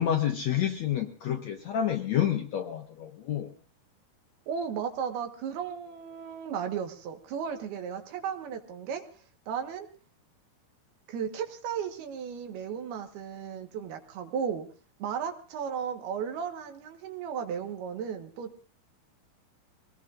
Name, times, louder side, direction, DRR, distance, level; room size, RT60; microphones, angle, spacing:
voice 1, 0.0-3.5, left 10 dB, 70° left, 4 dB, 1.7 m, -29 dB
voice 2, 4.5-9.1 9.5-9.9 11.1-14.7 15.0-18.6, right 7 dB, 80° right, 4 dB, 3.5 m, -35 dB
24.5 x 19.0 x 2.6 m, 0.38 s
omnidirectional pair, 4.4 m